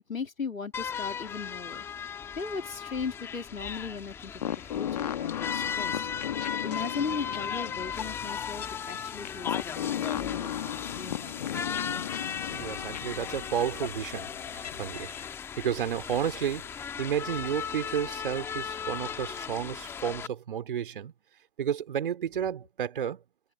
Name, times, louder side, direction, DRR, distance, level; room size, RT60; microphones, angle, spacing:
voice 1, 0.1-1.8 2.4-6.3 6.6-11.5 14.6-14.8, left 5 dB, 70° left, 2.7 m, -38 dB
sound 1, 0.7-20.3, left 7 dB, 5° left, 1.8 m, -37 dB
sound 2, 4.4-15.3, left 10 dB, 30° left, 1.5 m, -36 dB
voice 2, 12.5-15.1 15.6-21.1 21.6-23.2, right 9 dB, 40° right, 3.9 m, -32 dB
figure-of-eight pair, 145°, 41 cm